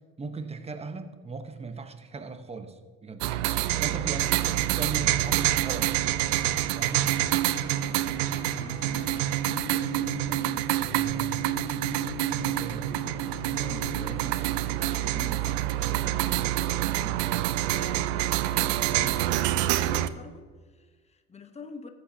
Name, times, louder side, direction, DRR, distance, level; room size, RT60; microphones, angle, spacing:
voice 1, 0.2-3.2 3.8-6.0 6.7-7.1 12.4-12.9, right 4 dB, 20° right, 8 dB, 1.0 m, -38 dB
sound 1, 3.2-20.1, right 14 dB, 80° right, 0.5 m, -27 dB
sound 2, 6.3-14.1, left 5 dB, 65° left, 2.5 m, -42 dB
voice 2, 7.4-11.5 13.2-21.9, left 3 dB, 20° left, 7 dB, 1.0 m, -46 dB
14.0 x 8.2 x 2.8 m, 1.5 s
supercardioid pair, 85°, 32 cm